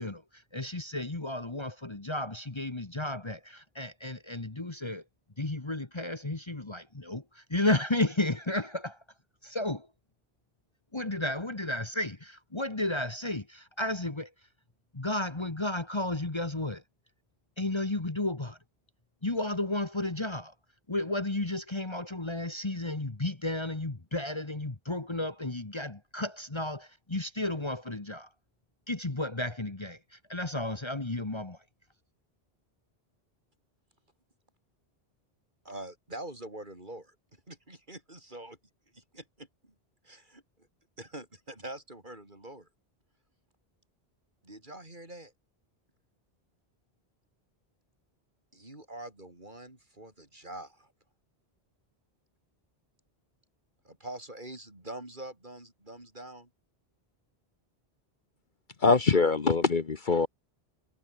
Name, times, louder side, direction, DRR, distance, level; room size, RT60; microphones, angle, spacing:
voice 1, 0.0-5.0 5.4-9.0 9.4-9.9 10.9-14.3 14.9-16.8 17.6-18.6 19.2-20.5 20.9-28.3 28.9-31.6, left 2 dB, 25° left, 1.6 m, -33 dB
voice 2, 35.6-37.2 37.5-38.6 38.9-39.7 40.0-40.4 41.0-42.7 44.4-45.3 48.5-50.9 53.8-56.5, right 1 dB, 50° right, 5.5 m, -44 dB
voice 3, 58.8-60.3, left 4 dB, 50° left, 1.3 m, -23 dB
omnidirectional pair, 1.1 m